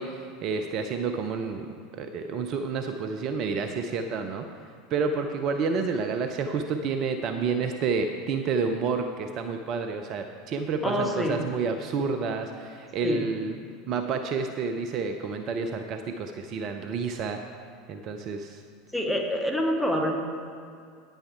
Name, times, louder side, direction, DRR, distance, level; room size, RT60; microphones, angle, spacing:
voice 1, 0.0-4.5 4.9-13.6 13.9-17.4 17.9-18.6, right 5 dB, 40° right, 6 dB, 0.6 m, -29 dB
voice 2, 10.8-11.4 13.0-13.3 18.9-20.1, equal, ahead, 1 dB, 1.4 m, -26 dB
9.7 x 9.0 x 4.6 m, 2.3 s
figure-of-eight pair, 80°, 0 cm